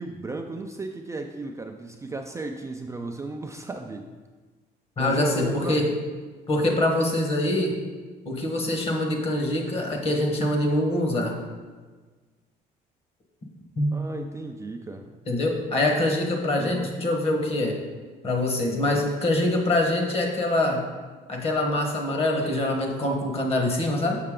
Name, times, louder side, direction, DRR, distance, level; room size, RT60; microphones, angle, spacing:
voice 1, 0.0-4.1 5.0-5.9 13.9-15.1 16.6-16.9, right 3 dB, 15° right, 3 dB, 0.4 m, -35 dB
voice 2, 5.0-5.9 6.5-7.8 8.2-11.4 13.8-13.9 15.3-17.8 18.2-20.9 21.3-24.2, left 1 dB, 35° left, 2 dB, 1.3 m, -24 dB
6.6 x 5.6 x 3.7 m, 1.4 s
cardioid pair, 110°, 17 cm